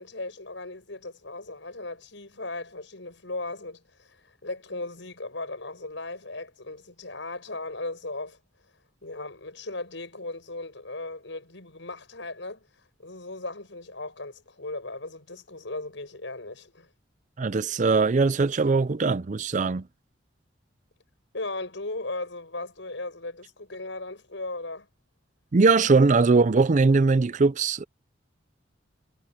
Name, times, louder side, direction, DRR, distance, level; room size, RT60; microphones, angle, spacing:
voice 1, 0.0-8.4 9.0-12.7 13.0-16.9 21.3-24.9, left 2 dB, 70° left, 7.1 m, -37 dB
voice 2, 17.4-19.9 25.5-27.8, right 4 dB, 40° right, 0.5 m, -21 dB
head